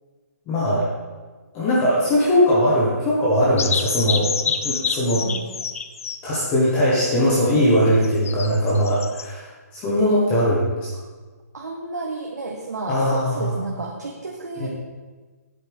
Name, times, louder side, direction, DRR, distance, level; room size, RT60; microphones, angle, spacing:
voice 1, 0.5-0.9 1.5-5.3 6.2-10.9 12.9-13.6 14.6-14.7, equal, 15° left, -7 dB, 1.4 m, -20 dB
sound 1, 3.6-6.2 8.0-9.3, left 6 dB, 55° left, 0.5 m, -27 dB
voice 2, 5.1-5.5 11.5-14.7, right 3 dB, 90° right, -1 dB, 1.2 m, -32 dB
9.3 x 8.1 x 3.6 m, 1.4 s
hypercardioid pair, 165°, 9 cm